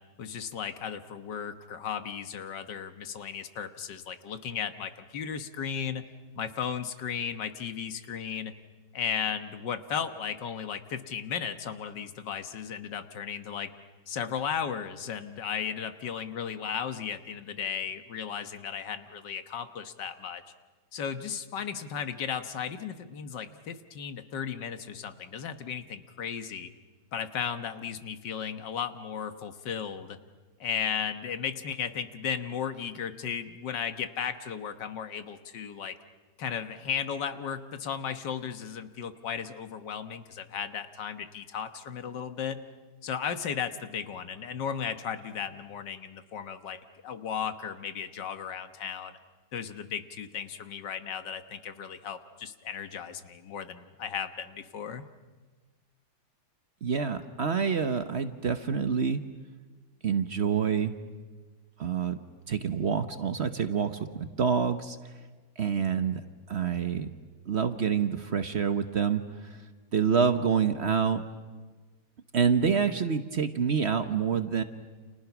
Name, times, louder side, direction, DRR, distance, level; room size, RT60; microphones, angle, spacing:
voice 1, 0.2-6.1 6.4-8.5 8.9-13.7 14.1-20.4 20.9-26.7 27.1-30.2 30.6-36.0 36.4-42.6 43.0-49.1 49.5-55.1, left 7 dB, 85° left, 10 dB, 1.9 m, -35 dB
voice 2, 56.8-59.2 60.0-60.9 61.8-62.2 62.5-65.0 65.6-66.2 66.5-67.1 67.5-69.2 69.5-69.6 69.9-71.2 72.3-74.6, right 6 dB, 45° right, 10 dB, 1.1 m, -27 dB
30.0 x 28.5 x 6.1 m, 1.3 s
omnidirectional pair, 1.9 m